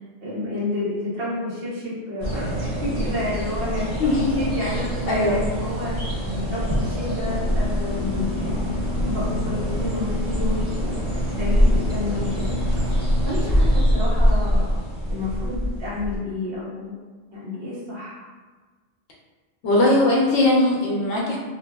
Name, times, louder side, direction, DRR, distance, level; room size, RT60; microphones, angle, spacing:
voice 1, 0.2-4.0 4.3-5.9 6.3-12.5 13.2-14.6 15.1-16.9 17.3-18.2, left 2 dB, 55° right, -7 dB, 1.1 m, -30 dB
sound 1, 2.2-16.2, equal, 35° right, 1.4 m, -24 dB
voice 2, 4.0-4.4 4.6-4.7 5.1-5.4 19.6-21.4, left 2 dB, 75° left, -3 dB, 0.9 m, -19 dB
2.7 x 2.6 x 2.2 m, 1.4 s
omnidirectional pair, 1.2 m